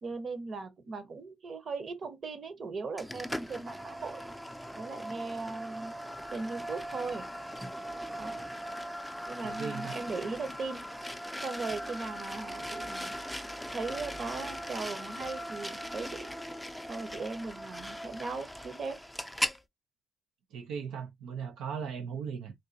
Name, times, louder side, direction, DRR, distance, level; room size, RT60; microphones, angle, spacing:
voice 1, 0.0-4.2 4.8-5.9 6.3-7.3 8.1-8.4 9.3-10.9 11.4-13.1 13.7-16.3 16.9-19.0, right 4 dB, 45° right, 1.0 m, -38 dB
sound 1, 3.0-19.6, equal, ahead, 0.4 m, -39 dB
voice 2, 9.4-10.0 20.5-22.5, right 7 dB, 90° right, 0.5 m, -38 dB
3.8 x 2.5 x 2.7 m
cardioid pair, 90°, 0 cm